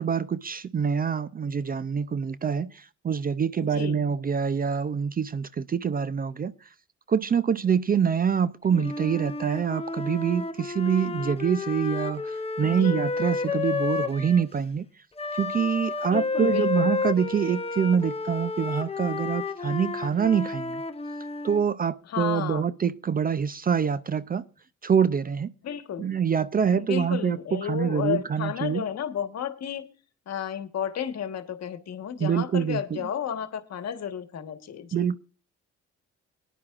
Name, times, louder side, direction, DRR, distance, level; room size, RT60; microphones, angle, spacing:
voice 1, 0.0-6.5 7.1-14.9 15.3-20.8 21.4-24.4 24.8-25.5 26.0-28.8 32.2-32.8 34.9-35.2, right 7 dB, 30° right, 0.4 m, -25 dB
voice 2, 3.6-4.0 12.6-13.1 16.1-16.9 22.0-22.7 25.6-26.1 26.7-29.9 30.3-35.1, left 9 dB, 60° left, 1.3 m, -32 dB
Wind instrument woodwind instrument, 8.7-14.5 15.2-21.6, left 4 dB, 20° left, 0.8 m, -31 dB
19.5 x 10.0 x 2.4 m
cardioid pair, 90°, 30 cm